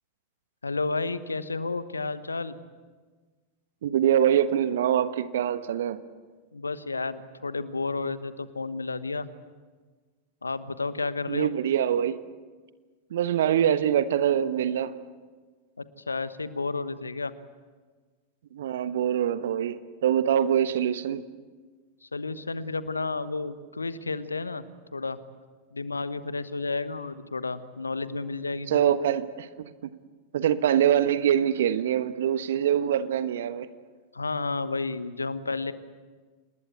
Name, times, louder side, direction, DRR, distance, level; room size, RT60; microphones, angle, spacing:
voice 1, 0.6-2.6 6.5-9.3 10.4-11.5 15.8-17.3 22.0-24.6 24.9-25.2 25.7-28.9 34.1-35.7, left 3 dB, 80° left, 14 dB, 1.1 m, -31 dB
voice 2, 3.8-6.0 11.3-12.2 13.1-14.9 18.5-21.2 28.7-30.0 30.3-33.7, right 9 dB, 60° right, 13 dB, 1.2 m, -24 dB
27.5 x 20.5 x 8.2 m, 1.4 s
figure-of-eight pair, 90°, 0 cm